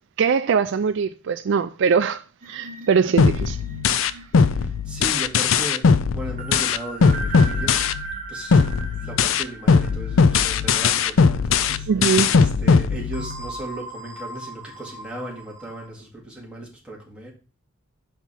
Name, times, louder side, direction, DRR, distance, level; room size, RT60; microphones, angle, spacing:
voice 1, 0.2-3.6 4.0-4.2 11.9-12.4, right 6 dB, 65° right, 0.4 m, -22 dB
sound 1, 2.4-11.3 11.7-11.9 13.1-15.9, right 2 dB, 40° right, 1.4 m, -38 dB
sound 2, 3.2-8.2 8.5-13.5, left 5 dB, 75° left, 0.5 m, -19 dB
voice 2, 4.4-5.9 6.1-17.3, right 2 dB, 5° right, 2.1 m, -37 dB
5.9 x 4.3 x 5.5 m
head